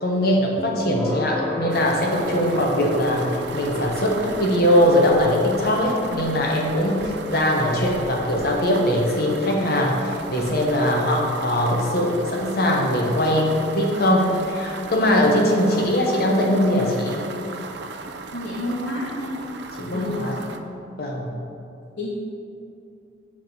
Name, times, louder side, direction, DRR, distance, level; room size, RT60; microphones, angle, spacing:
voice 1, 0.0-17.2 19.8-20.4 21.0-21.3, left 1 dB, 50° left, -1 dB, 1.0 m, -21 dB
sound 1, 0.6-15.5, left 1 dB, 10° left, 0.6 m, -36 dB
sound 2, 1.7-20.6, right 4 dB, 65° right, 0.4 m, -36 dB
voice 2, 18.3-19.4 19.9-20.4 21.0-21.2 22.0-22.1, left 1 dB, 80° left, -8 dB, 1.4 m, -30 dB
7.4 x 3.7 x 6.0 m, 2.6 s
head